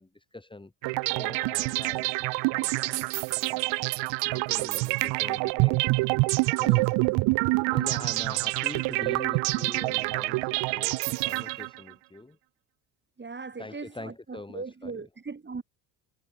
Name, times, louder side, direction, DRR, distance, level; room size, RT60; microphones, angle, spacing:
voice 1, 0.0-2.1 2.4-3.8 4.2-5.8 6.6-6.9 7.7-12.4 13.6-15.0, left 2 dB, 10° left, 3.4 m, -44 dB
sound 1, 0.8-11.9, right 25 dB, 70° right, 1.8 m, -26 dB
voice 2, 13.2-15.6, right 4 dB, 25° right, 7.8 m, -39 dB
hypercardioid pair, 75°, 45 cm